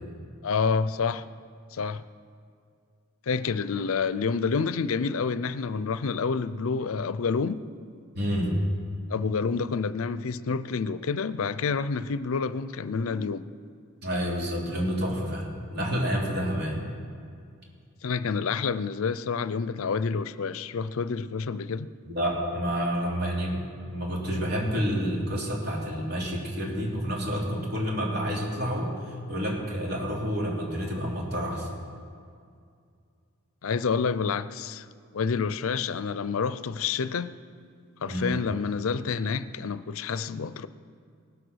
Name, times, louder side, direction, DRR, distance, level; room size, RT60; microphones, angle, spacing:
voice 1, 0.4-1.3 1.7-2.0 3.3-7.6 9.1-13.5 18.0-21.9 33.6-34.9 35.1-37.3 38.0-40.7, left 5 dB, 75° left, 0.5 m, -28 dB
voice 2, 8.1-8.6 14.0-16.8 22.0-31.7 38.1-38.3, equal, 50° right, 3.1 m, -29 dB
18.5 x 7.8 x 6.3 m
head